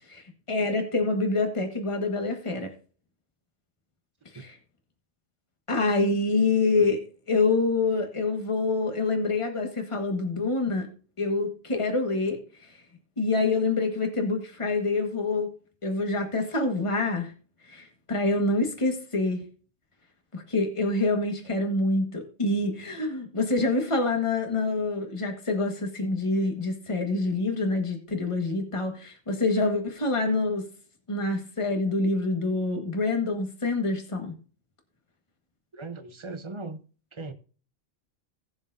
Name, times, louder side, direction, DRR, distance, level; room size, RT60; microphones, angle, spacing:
voice 1, 0.1-2.7 4.3-4.5 5.7-7.0 7.3-10.9 11.2-12.4 13.2-15.5 15.8-17.3 17.7-19.4 20.3-30.7 31.1-34.3, left 3 dB, 25° left, 1.6 m, -26 dB
voice 2, 35.7-36.8 37.1-37.3, right 3 dB, 30° right, 0.7 m, -38 dB
17.5 x 6.9 x 2.7 m
omnidirectional pair, 1.3 m